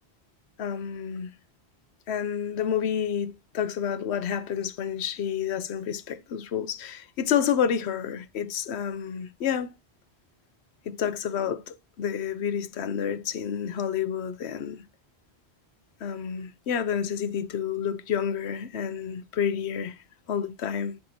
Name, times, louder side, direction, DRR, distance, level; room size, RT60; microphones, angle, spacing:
voice 1, 0.6-1.3 2.1-9.7 10.9-14.8 16.0-20.0 20.3-21.0, left 8 dB, 85° left, 1.0 m, -29 dB
10.5 x 3.5 x 2.7 m
omnidirectional pair, 1.1 m